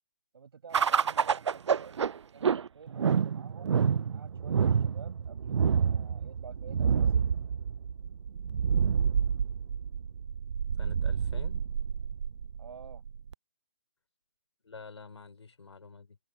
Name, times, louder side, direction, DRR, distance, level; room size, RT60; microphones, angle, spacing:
voice 1, 0.3-3.8 4.1-7.3 12.6-13.0, right 6 dB, 60° right, 8.0 m, -50 dB
sound 1, 0.7-13.3, right 7 dB, 80° right, 0.4 m, -28 dB
voice 2, 10.7-11.6 14.6-16.2, left 4 dB, 75° left, 5.2 m, -48 dB
hypercardioid pair, 160°, 15 cm